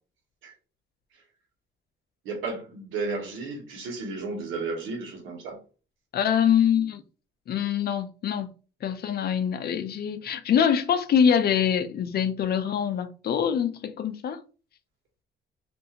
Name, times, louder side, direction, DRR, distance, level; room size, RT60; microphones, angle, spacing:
voice 1, 2.2-5.6, right 3 dB, 85° right, 1.1 m, -33 dB
voice 2, 6.1-7.0 7.5-8.5 8.8-14.4, left 8 dB, 55° left, 0.4 m, -24 dB
2.6 x 2.4 x 2.8 m
cardioid pair, 90°, 20 cm